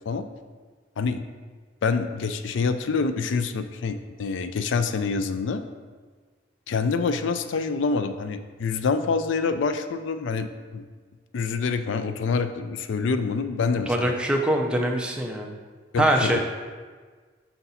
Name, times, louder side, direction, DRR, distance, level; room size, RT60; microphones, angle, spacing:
voice 1, 1.0-1.3 1.8-5.6 6.7-10.9 11.3-14.1 15.9-16.4, left 4 dB, 70° left, 9 dB, 0.4 m, -26 dB
voice 2, 13.9-15.5 16.0-16.4, right 1 dB, 5° right, 1 dB, 0.5 m, -23 dB
5.7 x 4.1 x 4.0 m, 1.5 s
head